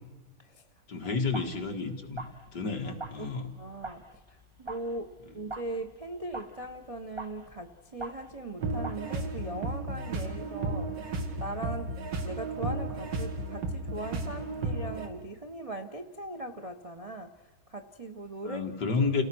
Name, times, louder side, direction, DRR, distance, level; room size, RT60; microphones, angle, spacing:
voice 1, 0.9-2.2 2.5-3.5 18.4-19.2, left 4 dB, 55° left, 3 dB, 2.5 m, -30 dB
sound 1, 1.3-1.7 2.0-8.5 8.8-9.3, right 2 dB, 15° right, 1.1 m, -44 dB
voice 2, 2.6-3.3 3.5-18.6, right 2 dB, 35° right, 4 dB, 0.6 m, -40 dB
sound 2, 8.6-15.1, right 2 dB, 60° right, 2.5 m, -34 dB
29.5 x 17.5 x 6.2 m, 1.2 s
omnidirectional pair, 2.3 m